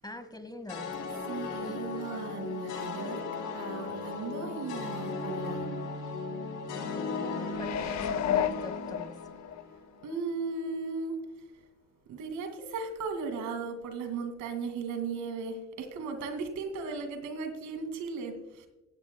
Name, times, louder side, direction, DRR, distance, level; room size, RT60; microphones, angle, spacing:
voice 1, 0.0-1.0 1.6-1.8 6.7-9.1, left 1 dB, 15° left, 8 dB, 1.7 m, -43 dB
sound 1, 0.7-10.0, left 4 dB, 85° left, 3.0 m, -37 dB
voice 2, 1.3-3.2 3.5-5.7 10.0-11.2 12.1-18.7, right 4 dB, 85° right, 7 dB, 2.2 m, -36 dB
sound 2, 7.5-9.6 10.1-10.2, left 10 dB, 65° left, 0.7 m, -32 dB
16.5 x 13.5 x 2.2 m, 0.99 s
cardioid pair, 90°, 30 cm